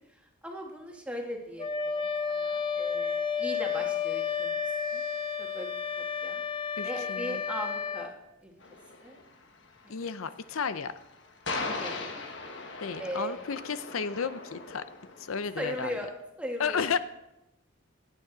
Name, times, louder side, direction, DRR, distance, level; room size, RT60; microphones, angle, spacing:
voice 1, 0.4-1.7 2.0-4.6 4.9-5.0 5.4-5.7 6.2-6.4 6.8-8.1 8.4-8.5 9.0-9.2 9.8-9.9 11.8-12.2 13.0-13.5 15.6-16.1 16.4-16.8, equal, 5° right, 0 dB, 1.6 m, -38 dB
Wind instrument woodwind instrument, 1.6-8.1, left 6 dB, 25° left, 0.5 m, -31 dB
voice 2, 6.8-7.4 9.9-10.9 12.8-14.8 15.2-16.0 16.6-17.0, left 6 dB, 90° left, 13 dB, 0.6 m, -33 dB
sound 1, 8.6-16.0, left 3 dB, 60° left, 1.4 m, -40 dB
17.5 x 9.1 x 4.0 m, 0.89 s
head